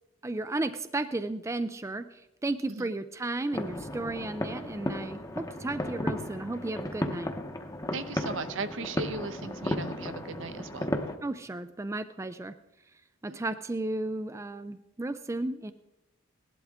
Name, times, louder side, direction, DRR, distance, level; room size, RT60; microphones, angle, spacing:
voice 1, 0.2-7.3 11.2-12.5 13.2-15.7, right 2 dB, 15° right, 11 dB, 0.3 m, -34 dB
sound 1, 3.5-11.2, left 1 dB, 15° left, 0.9 m, -34 dB
voice 2, 7.9-10.9 13.3-13.4, right 3 dB, 70° right, 11 dB, 0.9 m, -37 dB
18.0 x 11.5 x 3.7 m, 0.91 s
head